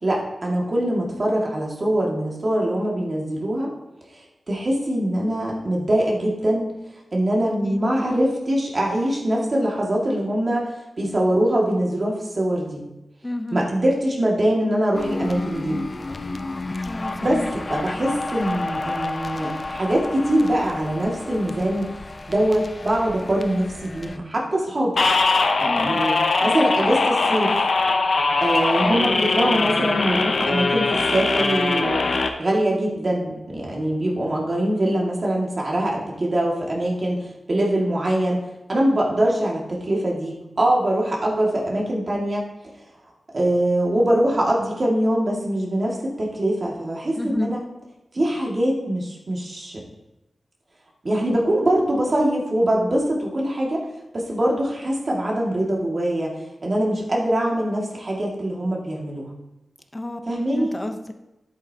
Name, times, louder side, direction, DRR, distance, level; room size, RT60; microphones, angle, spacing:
voice 1, 0.0-3.7 4.1-6.7 7.1-12.9 13.5-15.8 17.2-17.4 17.7-22.0 22.3-25.0 25.6-26.1 26.4-27.5 28.4-32.1 32.4-42.5 43.3-47.6 48.1-49.8 51.0-53.9 54.1-56.4 56.6-59.3 60.3-60.7, right 1 dB, 45° right, -2 dB, 2.1 m, -23 dB
voice 2, 13.2-13.6 16.8-17.5 25.6-26.0 47.2-47.5 59.9-60.2 60.5-61.1, left 1 dB, 20° left, 7 dB, 0.8 m, -30 dB
sound 1, 14.9-24.2, left 2 dB, 40° left, 0.4 m, -32 dB
sound 2, 25.0-32.3, left 3 dB, 65° left, 0.7 m, -21 dB
10.5 x 8.2 x 2.9 m, 0.98 s
wide cardioid pair, 85°, 0 cm